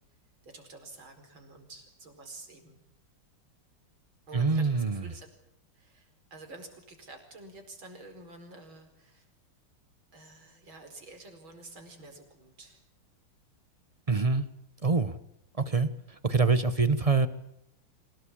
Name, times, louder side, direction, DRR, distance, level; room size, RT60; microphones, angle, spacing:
voice 1, 0.4-2.8 4.3-5.3 5.7-9.3 10.1-12.8, right 2 dB, 70° right, 5 dB, 5.5 m, -49 dB
voice 2, 4.3-5.0 14.1-14.4 14.8-15.2 15.6-15.9 16.2-17.3, right 4 dB, 25° right, 12 dB, 0.7 m, -25 dB
26.5 x 18.0 x 8.6 m, 0.82 s
omnidirectional pair, 2.3 m